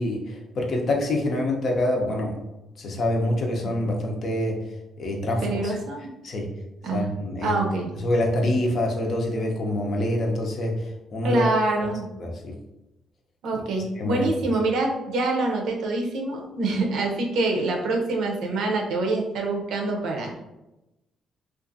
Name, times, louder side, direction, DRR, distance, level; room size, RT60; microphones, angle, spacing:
voice 1, 0.0-2.4 2.8-4.6 5.0-5.7 6.2-6.5 6.9-7.6 8.0-11.4 11.8-11.9 12.2-12.5 14.0-14.3, left 1 dB, 60° left, 1 dB, 0.6 m, -26 dB
voice 2, 5.4-6.1 6.8-7.0 7.4-7.9 11.2-12.1 13.4-20.4, right 2 dB, 75° right, 1 dB, 0.6 m, -25 dB
2.5 x 2.4 x 2.6 m, 0.95 s
cardioid pair, 90°, 0 cm